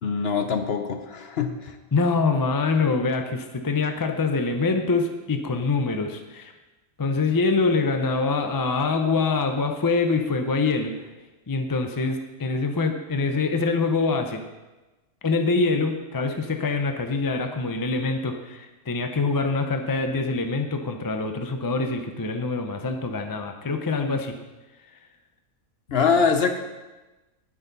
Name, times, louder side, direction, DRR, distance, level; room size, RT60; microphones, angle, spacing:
voice 1, 0.0-1.7 25.9-26.6, left 5 dB, 50° left, 6 dB, 0.9 m, -23 dB
voice 2, 1.9-6.5 7.0-11.0 11.5-14.4 15.2-24.4, left 4 dB, 25° left, 5 dB, 0.4 m, -24 dB
11.0 x 9.4 x 4.0 m, 1.1 s
omnidirectional pair, 1.5 m